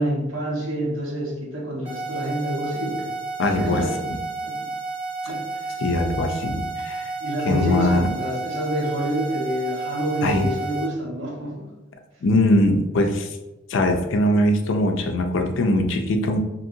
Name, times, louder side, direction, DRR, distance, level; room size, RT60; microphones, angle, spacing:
voice 1, 0.0-3.1 3.6-4.1 4.4-4.7 5.2-5.4 7.2-11.7, right 1 dB, 75° right, -1 dB, 0.8 m, -27 dB
sound 1, 1.9-10.9, right 3 dB, 35° right, 0.6 m, -31 dB
voice 2, 3.4-4.2 5.8-7.1 7.5-8.1 10.2-10.5 12.2-13.4 13.7-16.4, left 1 dB, 70° left, 4 dB, 0.4 m, -21 dB
2.9 x 2.7 x 2.5 m, 0.99 s
head